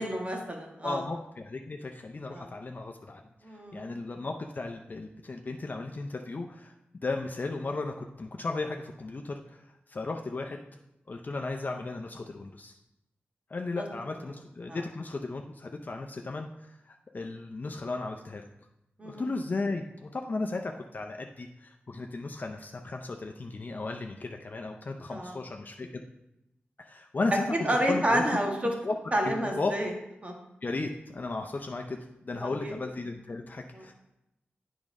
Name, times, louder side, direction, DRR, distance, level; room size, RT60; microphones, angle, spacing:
voice 1, 0.0-1.0 2.3-2.5 3.4-3.9 13.7-13.8 14.7-14.8 19.0-19.2 25.1-25.4 27.6-28.7 29.1-29.9 30.2-30.3 32.3-32.7 33.7-33.8, right 1 dB, 30° right, 1 dB, 1.5 m, -30 dB
voice 2, 0.8-3.2 3.7-6.7 7.0-9.6 9.9-10.6 11.1-12.8 13.5-18.5 19.0-26.0 26.8-28.2 28.8-29.7 30.6-33.9, left 3 dB, 45° left, 3 dB, 0.5 m, -35 dB
8.7 x 3.6 x 5.2 m, 0.87 s
wide cardioid pair, 75°, 4 cm